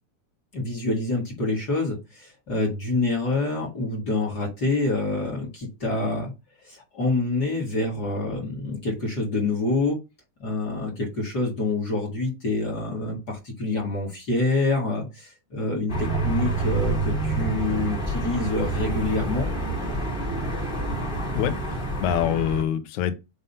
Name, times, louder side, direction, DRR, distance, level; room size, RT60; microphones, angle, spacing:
voice 1, 0.5-6.3 6.6-10.0 10.4-19.5, left 2 dB, 35° left, 2.0 m, -26 dB
sound 1, 15.9-22.6, right 2 dB, 20° left, 1.8 m, -27 dB
voice 2, 21.4-23.2, left 10 dB, 70° left, 2.1 m, -25 dB
5.4 x 4.0 x 5.5 m
omnidirectional pair, 4.2 m